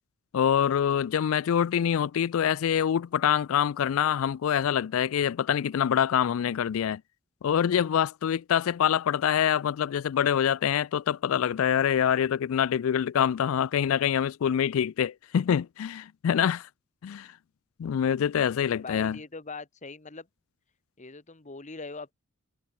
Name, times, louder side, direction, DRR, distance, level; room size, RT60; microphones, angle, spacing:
voice 1, 0.3-7.0 7.4-16.7 17.0-17.3 17.8-19.2, left 9 dB, 75° left, 0.3 m, -25 dB
voice 2, 18.8-20.3 21.0-22.1, left 3 dB, 35° left, 1.4 m, -41 dB
head